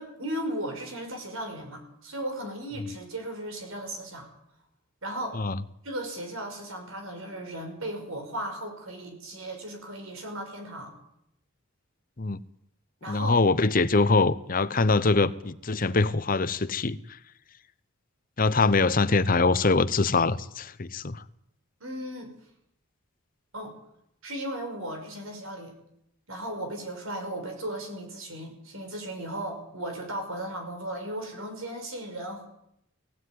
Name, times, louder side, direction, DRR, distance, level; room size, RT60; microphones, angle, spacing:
voice 1, 0.0-4.3 5.0-5.4 5.8-10.9 13.0-13.4 21.8-22.3 23.5-23.7 24.2-25.7 26.3-32.5, right 1 dB, 75° right, 5.8 m, -36 dB
voice 2, 13.1-17.0 18.4-21.2, left 3 dB, 40° left, 0.8 m, -23 dB
19.0 x 16.5 x 9.5 m
head